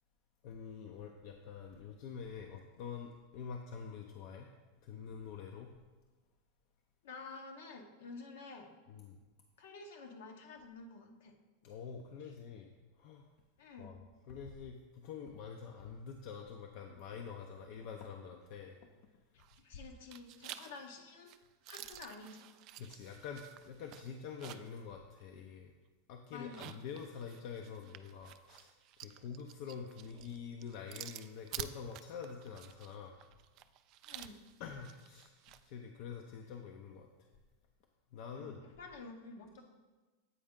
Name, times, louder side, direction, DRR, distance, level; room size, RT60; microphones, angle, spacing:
voice 1, 0.4-4.5 4.8-5.7 8.9-9.2 11.6-12.7 13.0-13.3 13.8-18.8 22.8-25.7 26.1-28.7 29.0-33.2 34.6-37.3 38.1-38.6, left 6 dB, 60° left, 3 dB, 0.5 m, -46 dB
voice 2, 7.0-8.7 9.6-11.3 12.2-12.3 13.6-13.9 19.6-21.4 21.7-22.5 26.3-26.7 34.1-34.4 38.3-39.6, left 4 dB, 75° left, 4 dB, 0.9 m, -50 dB
sound 1, 19.4-19.8 20.1-24.8 25.2-25.3 26.4-35.6, right 12 dB, 50° right, 0.3 m, -50 dB
8.3 x 4.3 x 3.7 m, 1.2 s
hypercardioid pair, 110°, 0 cm